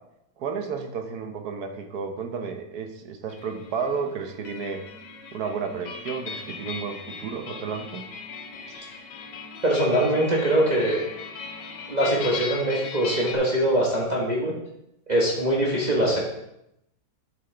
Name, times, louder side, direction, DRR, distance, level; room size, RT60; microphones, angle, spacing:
voice 1, 0.4-4.8 5.3-8.1 8.7-8.8 15.9-16.2, right 5 dB, 65° right, 5 dB, 1.2 m, -32 dB
sound 1, 3.3-13.3, left 5 dB, 80° left, 1.5 m, -39 dB
voice 2, 9.6-11.0 11.9-14.5 15.1-16.2, right 1 dB, 25° right, -4 dB, 1.3 m, -22 dB
8.7 x 7.5 x 3.3 m, 0.82 s
omnidirectional pair, 1.9 m